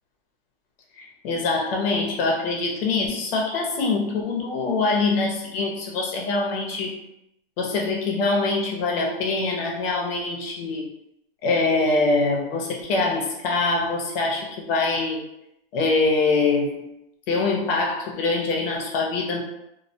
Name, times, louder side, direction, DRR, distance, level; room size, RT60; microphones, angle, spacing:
voice 1, 1.0-7.0 7.6-10.9 11.4-15.2 15.7-16.8 17.3-19.4, left 3 dB, 65° left, 0 dB, 0.8 m, -24 dB
2.2 x 2.1 x 2.7 m, 0.85 s
supercardioid pair, 155°, 31 cm